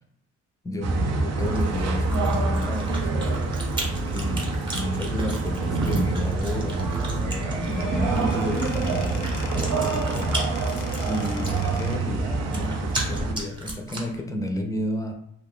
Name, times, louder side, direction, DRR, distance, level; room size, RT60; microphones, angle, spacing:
voice 1, 0.6-3.1 4.1-10.3 11.1-15.1, left 1 dB, 10° left, 4 dB, 0.5 m, -32 dB
sound 1, 0.8-13.3, right 3 dB, 55° right, 0.6 m, -26 dB
Chewing mastication, 1.4-14.2, right 1 dB, 15° right, 0.9 m, -37 dB
Squeak / Wood, 7.5-12.1, left 7 dB, 80° left, 0.5 m, -41 dB
2.4 x 2.4 x 3.6 m, 0.75 s
cardioid pair, 90°, 30 cm